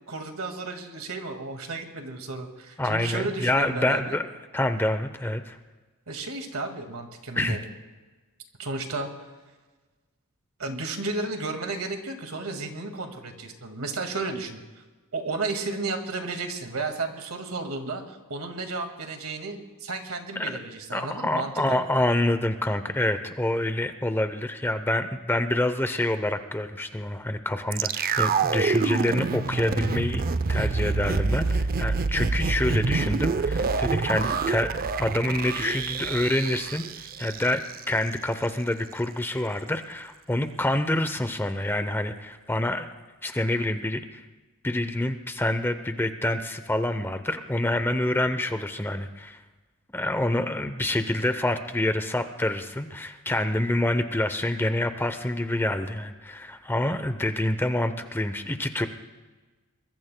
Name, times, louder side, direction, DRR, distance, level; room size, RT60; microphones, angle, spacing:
voice 1, 0.1-4.2 6.1-7.6 8.6-9.1 10.6-14.6 15.1-21.9, right 3 dB, 70° right, 5 dB, 1.9 m, -33 dB
voice 2, 2.8-4.3 4.5-5.6 7.4-7.6 20.4-20.6 20.9-30.2 30.5-34.7 35.0-42.9 43.2-44.2 44.6-49.4 49.9-58.9, left 1 dB, 10° left, 10 dB, 0.6 m, -27 dB
sound 1, 27.7-37.8 38.1-38.2, right 4 dB, 40° right, 0.5 m, -27 dB
23.5 x 21.5 x 2.2 m, 1.3 s
head